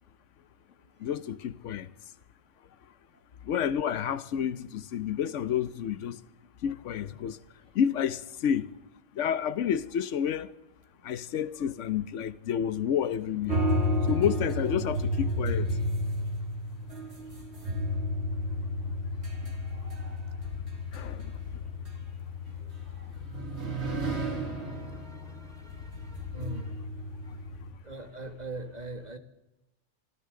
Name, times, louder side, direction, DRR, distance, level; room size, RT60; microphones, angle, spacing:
voice 1, 1.0-1.9 3.5-6.2 6.6-7.4 7.8-8.7 9.2-10.5 11.0-13.6 14.1-15.6 20.9-21.2, left 9 dB, 90° left, 1.1 m, -29 dB
sound 1, 13.5-27.7, left 1 dB, 65° right, 2.7 m, -32 dB
voice 2, 19.7-20.5 22.5-23.1 24.5-26.9 27.2-27.3 27.8-29.2, right 1 dB, 35° right, 1.6 m, -44 dB
25.0 x 13.5 x 3.8 m
omnidirectional pair, 1.2 m